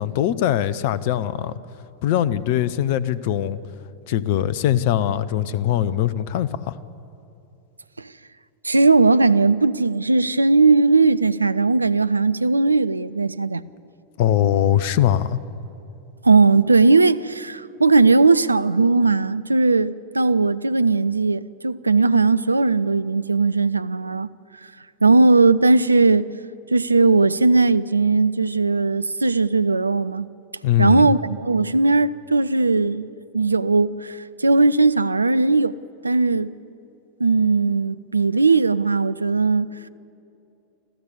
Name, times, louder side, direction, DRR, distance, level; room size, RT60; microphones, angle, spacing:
voice 1, 0.0-1.6 2.0-3.6 4.1-6.8 14.2-15.4 30.6-31.1, left 11 dB, 50° left, 0.8 m, -21 dB
voice 2, 8.6-13.6 16.2-24.3 25.0-26.3 26.7-30.3 30.8-35.8 36.0-36.5 37.2-39.8, right 3 dB, 80° right, 0.5 m, -18 dB
26.5 x 14.5 x 7.9 m
figure-of-eight pair, 90°, 0 cm